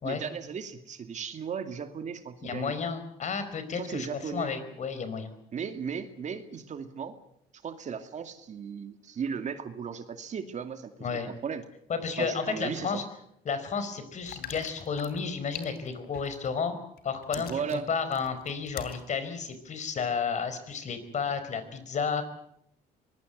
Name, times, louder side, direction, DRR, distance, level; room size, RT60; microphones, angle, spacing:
voice 1, 0.0-2.7 3.7-4.5 5.5-7.1 7.6-11.6 12.2-12.9 17.4-17.9, right 6 dB, 45° right, 8 dB, 2.4 m, -36 dB
voice 2, 2.4-5.3 11.0-11.3 11.9-13.0 13.4-16.7 17.0-22.2, left 5 dB, 45° left, 11 dB, 4.8 m, -32 dB
sound 1, 14.2-16.6 17.0-19.0 19.5-19.6, left 9 dB, 65° left, 3.3 m, -43 dB
24.0 x 20.5 x 8.1 m, 0.75 s
cardioid pair, 110°, 17 cm